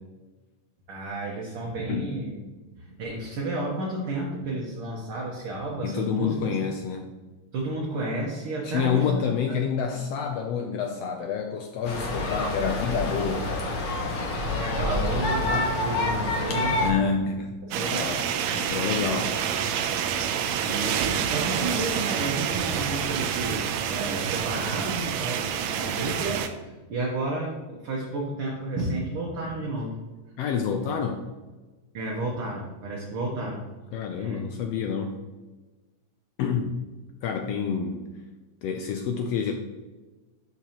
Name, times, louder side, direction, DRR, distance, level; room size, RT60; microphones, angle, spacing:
voice 1, 0.9-2.4 2.8-6.6 7.5-9.6 14.5-17.2 17.7-18.1 19.0-19.3 20.6-29.9 31.9-33.7 34.2-34.5, right 2 dB, 60° right, -2 dB, 1.6 m, -32 dB
voice 2, 5.8-7.1 8.6-13.6 16.8-17.5 17.8-18.3 18.5-19.4 30.4-31.2 33.9-35.2 36.4-36.8 37.2-38.1 38.6-39.5, left 6 dB, 85° left, 4 dB, 1.4 m, -28 dB
sound 1, 11.8-16.9, left 2 dB, 60° left, 1.3 m, -27 dB
sound 2, 17.7-26.5, right 8 dB, 80° right, 1.7 m, -28 dB
11.5 x 4.6 x 2.9 m, 1.2 s
omnidirectional pair, 3.4 m